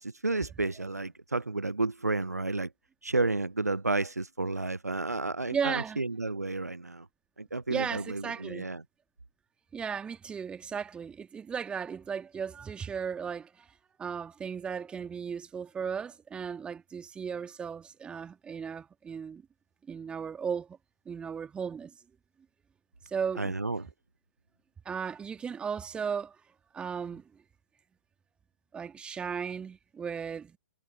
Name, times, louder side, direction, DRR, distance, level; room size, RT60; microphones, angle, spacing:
voice 1, 0.0-2.7 3.0-7.1 7.4-8.8 23.4-23.9, right 2 dB, 90° right, 0.5 m, -31 dB
voice 2, 5.5-6.0 7.7-8.7 9.7-13.7 14.0-19.4 19.9-20.8 21.1-21.9 23.1-23.5 24.9-26.4 26.7-27.2 28.7-30.6, right 6 dB, 10° right, 2.1 m, -35 dB
figure-of-eight pair, 120°, 8 cm